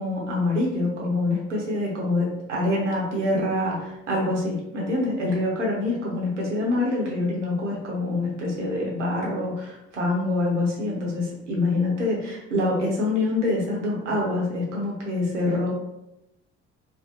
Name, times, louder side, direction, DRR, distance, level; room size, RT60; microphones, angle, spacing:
voice 1, 0.0-15.7, left 2 dB, 85° right, -3 dB, 0.7 m, -25 dB
2.4 x 2.0 x 2.8 m, 0.90 s
figure-of-eight pair, 50°, 35 cm